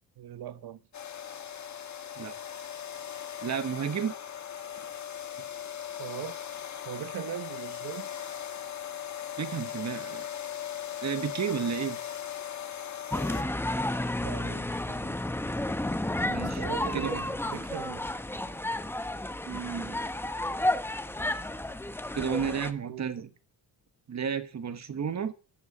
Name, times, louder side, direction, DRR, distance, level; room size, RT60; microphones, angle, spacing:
voice 1, 0.2-0.8 6.0-6.4 6.9-8.1 14.2-15.2 16.5-18.1 22.8-23.3, right 12 dB, 70° right, 1.0 m, -40 dB
sound 1, 0.9-13.4, left 10 dB, 45° left, 1.5 m, -39 dB
voice 2, 3.4-4.1 9.4-10.3 11.0-12.0 16.3-16.6 16.9-17.2 19.5-20.0 22.1-23.3 24.1-25.3, right 7 dB, 45° right, 1.5 m, -32 dB
sound 2, 13.1-22.7, left 1 dB, 5° left, 0.9 m, -31 dB
13.0 x 8.2 x 7.4 m
cardioid pair, 120°, 39 cm